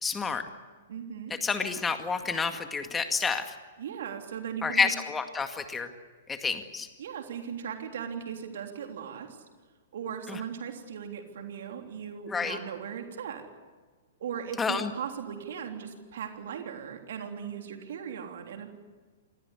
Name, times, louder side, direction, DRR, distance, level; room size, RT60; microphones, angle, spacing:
voice 1, 0.0-0.5 1.3-3.6 4.6-5.9 6.3-6.9 10.3-10.4 12.3-12.6 14.6-14.9, left 5 dB, 15° left, 7 dB, 2.1 m, -29 dB
voice 2, 0.9-1.3 3.8-4.9 7.0-9.4 9.9-13.4 14.2-18.8, right 8 dB, 60° right, 4 dB, 3.5 m, -38 dB
27.0 x 20.0 x 8.4 m, 1.4 s
figure-of-eight pair, 110°, 0 cm